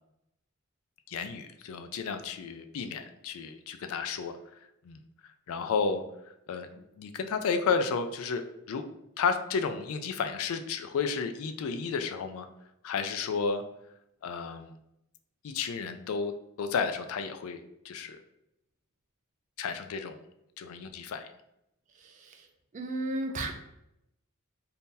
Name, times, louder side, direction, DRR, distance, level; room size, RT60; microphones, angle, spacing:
voice 1, 1.1-4.4 4.8-8.9 9.2-12.5 12.8-13.6 14.2-14.7 15.4-18.2 19.6-20.2 20.6-21.3, left 5 dB, 70° left, 9 dB, 0.3 m, -32 dB
voice 2, 22.0-22.5 22.7-23.5, right 1 dB, 35° right, 4 dB, 0.4 m, -34 dB
2.8 x 2.6 x 3.6 m, 0.83 s
head